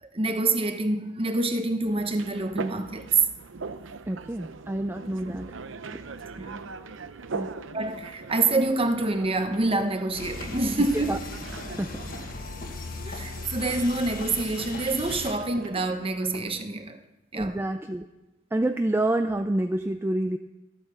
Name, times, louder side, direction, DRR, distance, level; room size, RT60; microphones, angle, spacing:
voice 1, 0.0-3.1 6.4-6.7 7.7-11.1 13.0-17.0 17.3-17.6, right 2 dB, 30° right, 1.0 m, -27 dB
sound 1, 1.8-16.6, right 4 dB, 85° right, 0.7 m, -41 dB
voice 2, 4.1-5.5 5.9-6.0 7.3-7.5 11.1-11.2 11.7-12.3 17.4-18.1 18.5-20.4, right 1 dB, 10° right, 0.4 m, -28 dB
sound 2, 10.1-15.3, left 3 dB, 50° left, 1.5 m, -37 dB
13.0 x 9.0 x 6.3 m
head